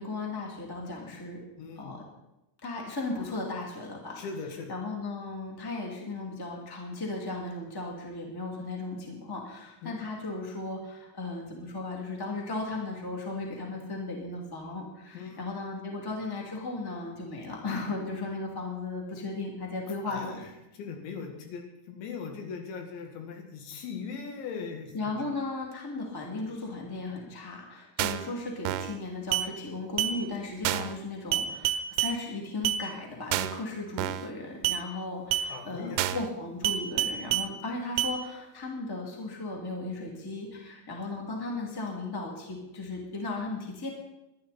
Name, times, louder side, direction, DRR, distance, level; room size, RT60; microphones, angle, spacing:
voice 1, 0.0-1.4 1.7-2.0 2.6-4.2 4.7-20.4 24.9-43.9, left 3 dB, 10° left, 0 dB, 1.6 m, -36 dB
voice 2, 1.6-2.0 4.2-4.8 9.8-10.0 15.1-15.4 20.1-20.5 20.7-25.2 30.6-30.8 35.5-36.0, left 5 dB, 80° left, 3 dB, 4.2 m, -40 dB
sound 1, 28.0-28.3 28.7-29.0 29.3-29.5 30.0-30.2 30.7-31.0 31.3-32.2 32.7-32.8 33.3-33.6 34.0-34.3 34.6-34.8 35.3-35.5 36.0-36.3 36.6-37.5 38.0-38.1, right 12 dB, 80° right, 2.5 m, -28 dB
22.5 x 11.5 x 4.3 m, 0.90 s
omnidirectional pair, 5.2 m